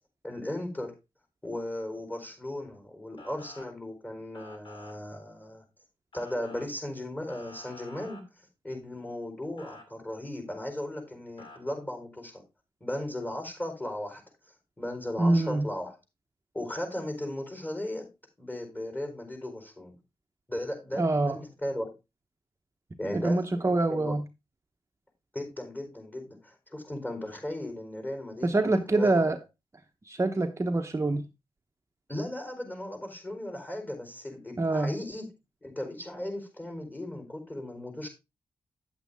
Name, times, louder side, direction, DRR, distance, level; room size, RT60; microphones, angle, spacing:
voice 1, 0.2-0.9 1.4-5.6 6.1-8.2 8.6-12.4 12.8-14.2 14.8-16.0 16.5-18.1 18.4-19.9 20.5-21.9 23.0-24.2 25.3-29.1 32.1-35.3 35.6-38.1, left 1 dB, 20° left, 4.3 m, -36 dB
Motor vehicle (road) / Siren, 3.2-3.7 4.3-4.9 6.1-6.7 7.3-8.2 9.6-9.8 11.4-11.6, left 2 dB, 60° left, 2.5 m, -49 dB
voice 2, 15.2-15.7 21.0-21.4 23.1-24.2 28.4-29.4 30.1-31.2 34.6-34.9, right 2 dB, 30° right, 0.9 m, -25 dB
9.2 x 8.0 x 3.5 m
cardioid pair, 65°, 10 cm